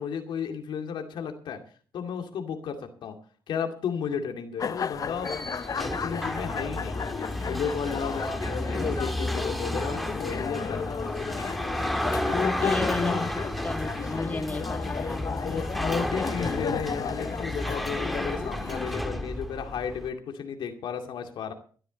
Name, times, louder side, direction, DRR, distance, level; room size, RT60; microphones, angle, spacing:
voice 1, 0.0-1.6 1.9-3.2 3.5-5.3 5.8-7.0 7.4-11.2 12.3-13.3 15.4-21.5, left 7 dB, 85° left, 5 dB, 2.4 m, -33 dB
sound 1, 4.6-19.0, left 6 dB, 50° left, 0.8 m, -34 dB
sound 2, 4.9-20.1, equal, ahead, 1.8 m, -32 dB
sound 3, 5.1-8.7, right 1 dB, 25° right, 6.5 m, -49 dB
voice 2, 12.6-15.6, left 2 dB, 20° left, 6 dB, 1.7 m, -35 dB
18.0 x 12.0 x 4.1 m, 0.43 s
cardioid pair, 70°, 8 cm